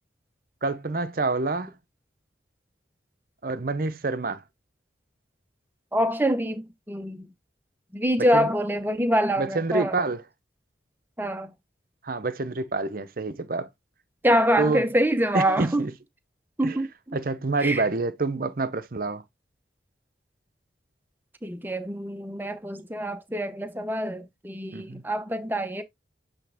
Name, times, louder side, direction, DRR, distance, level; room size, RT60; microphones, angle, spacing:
voice 1, 0.6-1.7 3.4-4.4 8.3-8.5 9.4-10.2 12.0-13.7 14.6-14.8 15.3-15.9 16.6-16.8 17.1-19.2 24.7-25.0, right 3 dB, 50° right, 0.7 m, -27 dB
voice 2, 5.9-7.3 7.9-10.1 11.2-11.5 14.2-15.9 16.6-17.2 17.6-17.8 21.4-25.8, equal, 10° right, 0.7 m, -25 dB
8.2 x 3.4 x 3.5 m
head